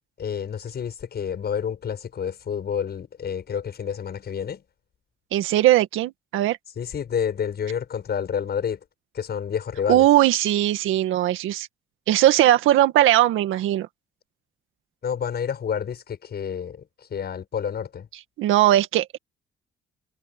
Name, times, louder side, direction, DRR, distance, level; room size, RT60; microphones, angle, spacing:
voice 1, 0.2-4.6 6.8-8.8 9.1-10.1 15.0-18.1, left 7 dB, 55° left, 6.8 m, -29 dB
voice 2, 5.3-6.6 9.9-11.7 12.1-13.9 18.4-19.2, right 13 dB, 90° right, 1.9 m, -19 dB
cardioid pair, 90°, 20 cm